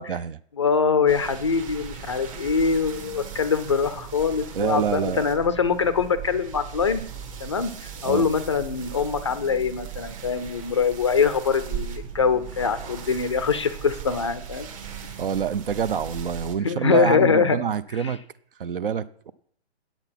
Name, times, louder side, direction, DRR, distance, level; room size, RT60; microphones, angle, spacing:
voice 1, 0.0-0.4 4.5-5.3 8.0-8.3 15.2-18.2 18.6-19.3, right 7 dB, 55° right, 0.6 m, -27 dB
voice 2, 0.6-7.0 7.4-14.7 16.6-17.6 18.0-18.1, left 5 dB, 25° left, 0.5 m, -23 dB
sound 1, 1.1-16.5, right 8 dB, 30° right, 1.2 m, -38 dB
8.9 x 8.2 x 5.8 m
hypercardioid pair, 160°, 33 cm